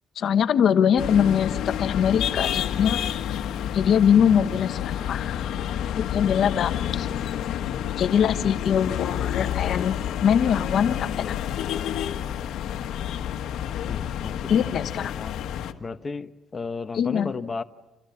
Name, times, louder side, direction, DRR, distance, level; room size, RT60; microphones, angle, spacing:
voice 1, 0.2-3.0 3.7-5.4 6.1-7.1 8.0-10.0 10.2-11.3 14.5-15.1 16.9-17.3, left 8 dB, 65° left, 10 dB, 1.2 m, -22 dB
sound 1, 1.0-15.7, left 10 dB, 80° left, 1.6 m, -29 dB
voice 2, 13.9-15.4 15.8-17.6, left 4 dB, 30° left, 8 dB, 1.2 m, -34 dB
30.0 x 28.0 x 7.1 m, 1.0 s
cardioid pair, 90°, 0 cm